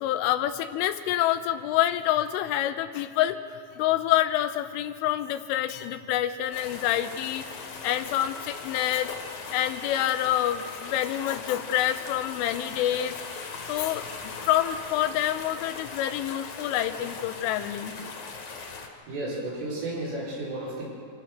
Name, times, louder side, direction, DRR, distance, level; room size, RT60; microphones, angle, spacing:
voice 1, 0.0-3.4 3.8-7.4 7.8-9.1 9.5-13.2 13.7-14.0 14.5-18.0, left 12 dB, 80° left, 10 dB, 3.1 m, -27 dB
sound 1, 6.5-18.9, left 4 dB, 50° left, 2.5 m, -39 dB
voice 2, 18.6-20.9, right 2 dB, 75° right, -6 dB, 7.9 m, -34 dB
26.5 x 16.5 x 6.6 m, 2.2 s
omnidirectional pair, 5.9 m